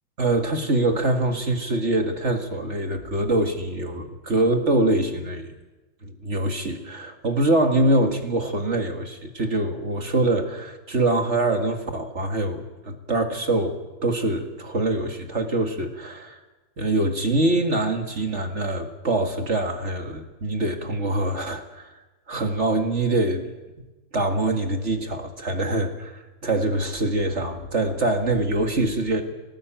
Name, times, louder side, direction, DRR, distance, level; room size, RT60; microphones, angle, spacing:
voice 1, 0.2-5.5 6.0-16.4 16.8-21.9 22.3-23.5 24.1-29.2, right 2 dB, 35° right, 5 dB, 2.0 m, -24 dB
19.5 x 18.0 x 9.1 m, 1.1 s
omnidirectional pair, 2.3 m